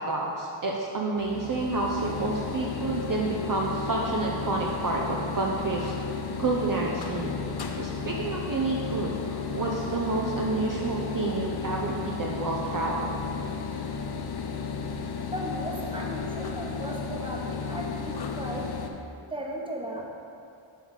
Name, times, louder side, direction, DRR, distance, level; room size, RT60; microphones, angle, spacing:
voice 1, 0.0-5.9 6.4-7.3 7.8-13.2, right 3 dB, 40° right, -2 dB, 0.7 m, -29 dB
sound 1, 1.2-18.9, left 5 dB, 50° left, 0.6 m, -33 dB
voice 2, 15.3-18.7 19.3-20.0, right 1 dB, 10° right, -1 dB, 1.0 m, -36 dB
7.7 x 3.4 x 6.5 m, 2.5 s
wide cardioid pair, 75°, 48 cm